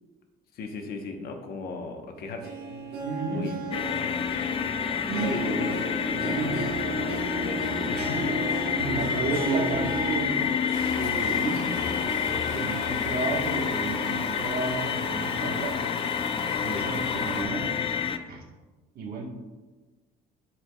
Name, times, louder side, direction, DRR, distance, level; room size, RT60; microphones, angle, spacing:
voice 1, 0.5-2.5 3.2-4.2 5.2-6.5 6.9-8.8 16.6-16.9, left 3 dB, 65° left, 4 dB, 1.0 m, -37 dB
Harp, 2.2-14.3 14.6-14.7 15.6-15.7, right 3 dB, 80° right, 1.1 m, -35 dB
voice 2, 3.0-3.5 5.1-5.4 6.3-6.6 8.8-10.4 10.9-15.8 16.6-17.7 18.3-18.4 18.9-19.3, right 4 dB, 60° right, 0 dB, 1.4 m, -32 dB
sound 1, 3.7-18.2, left 7 dB, 35° left, 0.4 m, -29 dB
sound 2, 10.7-17.4, left 3 dB, 85° left, 1.1 m, -37 dB
10.5 x 4.6 x 2.3 m, 1.3 s
cardioid pair, 110°, 17 cm